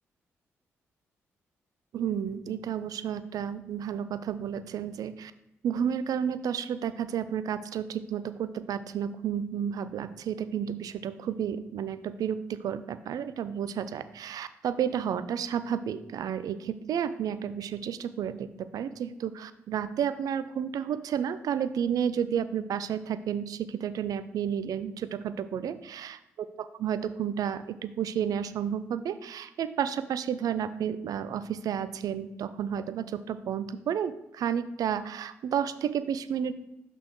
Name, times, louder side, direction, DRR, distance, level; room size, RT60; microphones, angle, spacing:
voice 1, 1.9-5.3 5.6-36.5, right 8 dB, 65° right, 13 dB, 0.5 m, -31 dB
5.8 x 5.7 x 3.8 m, 0.86 s
hypercardioid pair, 45°, 7 cm